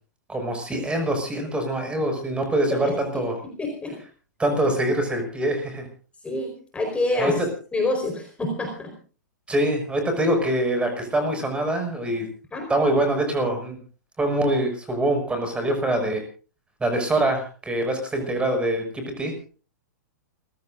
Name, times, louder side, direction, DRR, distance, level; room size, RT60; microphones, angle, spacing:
voice 1, 0.3-3.3 4.4-5.9 7.2-7.5 9.5-12.3 12.7-13.8 14.2-16.2 16.8-19.3, right 1 dB, 10° right, 5 dB, 6.2 m, -24 dB
voice 2, 3.4-4.0 6.2-7.3 7.7-8.9 12.5-12.7, left 2 dB, 10° left, 2 dB, 4.4 m, -27 dB
29.0 x 16.0 x 2.6 m, 0.38 s
hypercardioid pair, 115°, 10 cm